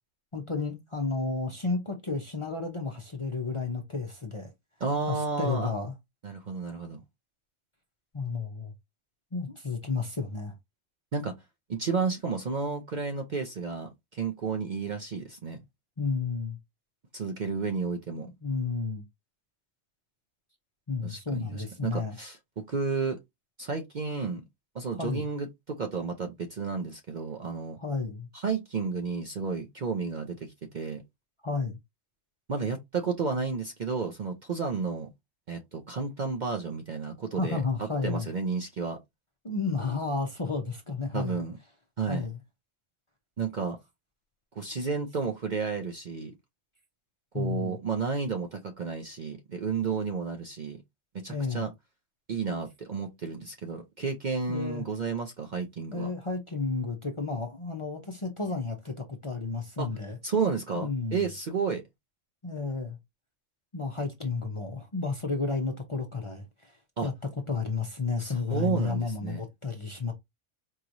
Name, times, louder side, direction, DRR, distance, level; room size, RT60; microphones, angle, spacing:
voice 1, 0.3-4.5 5.1-5.9 8.1-8.7 9.3-10.5 16.0-16.6 18.1-19.0 20.9-22.2 24.9-25.3 27.8-28.3 31.4-31.8 37.4-38.3 39.4-41.4 42.1-42.4 47.3-47.8 51.3-51.7 54.5-54.8 55.9-60.2 60.7-61.2 62.4-63.0 63.7-66.7 67.0-67.1 67.5-70.1, left 4 dB, 30° left, 0.6 m, -32 dB
voice 2, 4.8-5.7 6.2-7.0 11.1-11.4 11.7-15.6 17.1-18.3 21.0-23.2 23.6-24.4 24.7-27.8 28.3-31.0 32.5-35.1 35.5-37.6 38.0-39.0 41.1-41.6 42.0-42.3 43.4-43.8 44.6-46.3 47.3-50.8 51.1-51.7 52.3-56.1 59.8-59.9 60.2-61.8 67.0-67.1 68.2-69.4, right 5 dB, 50° right, 0.6 m, -32 dB
4.6 x 3.0 x 2.6 m
omnidirectional pair, 1.3 m